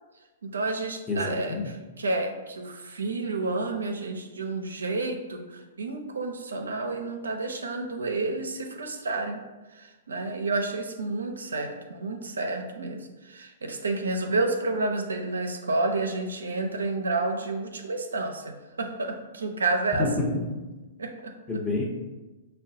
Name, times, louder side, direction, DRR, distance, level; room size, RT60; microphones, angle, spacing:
voice 1, 0.4-1.6 2.0-9.4 9.8-20.4 21.0-21.3, right 3 dB, 90° right, 4 dB, 0.4 m, -30 dB
voice 2, 1.1-1.7 19.9-20.6 21.5-21.9, left 3 dB, 15° left, -2 dB, 0.8 m, -28 dB
5.3 x 2.1 x 2.6 m, 1.2 s
hypercardioid pair, 125°, 0 cm